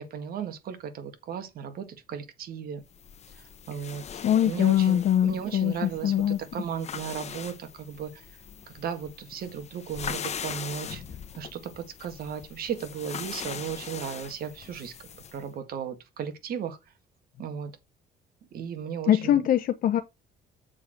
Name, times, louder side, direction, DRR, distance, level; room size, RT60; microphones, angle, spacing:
voice 1, 0.0-2.8 3.7-4.0 4.4-8.2 8.7-11.0 11.4-14.9 15.3-16.8 17.4-17.7 18.5-19.5, right 8 dB, 60° right, 1.8 m, -35 dB
sound 1, 2.9-15.5, left 7 dB, 40° left, 1.1 m, -41 dB
voice 2, 4.2-6.4 19.1-20.0, left 11 dB, 55° left, 0.8 m, -23 dB
7.4 x 4.6 x 6.0 m
cardioid pair, 110°, 17 cm